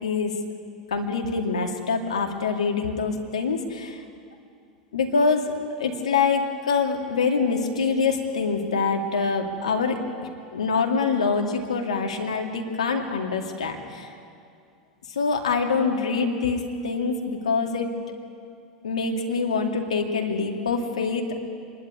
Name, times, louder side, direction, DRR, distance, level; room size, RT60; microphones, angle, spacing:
voice 1, 0.0-0.4 0.9-4.0 4.9-14.1 15.2-17.9 18.8-21.4, left 4 dB, 80° left, 2 dB, 2.3 m, -25 dB
25.5 x 11.5 x 9.5 m, 2.3 s
hypercardioid pair, 90°, 3 cm